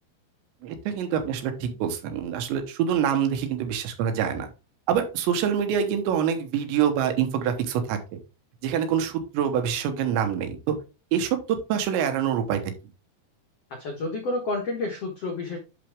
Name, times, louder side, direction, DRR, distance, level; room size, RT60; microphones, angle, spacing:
voice 1, 0.6-4.5 4.9-8.0 8.6-10.7 11.1-11.4 11.7-12.6, right 8 dB, 90° right, 7 dB, 3.4 m, -25 dB
voice 2, 13.8-15.6, left 2 dB, 85° left, 1 dB, 1.3 m, -29 dB
11.0 x 4.1 x 3.5 m, 0.31 s
omnidirectional pair, 5.1 m